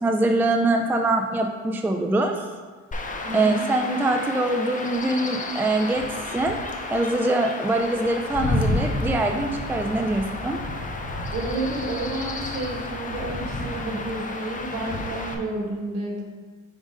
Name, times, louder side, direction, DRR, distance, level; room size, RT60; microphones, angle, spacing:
voice 1, 0.0-2.4 3.3-6.6 6.9-10.6, right 2 dB, 5° right, 4 dB, 0.4 m, -23 dB
Chirp tweet / Wind / Stream, 2.9-15.3, left 2 dB, 25° left, 0.8 m, -31 dB
voice 2, 3.2-3.6 11.3-16.2, right 2 dB, 60° right, -1 dB, 1.4 m, -30 dB
5.1 x 3.8 x 5.0 m, 1.4 s
cardioid pair, 90°, 30 cm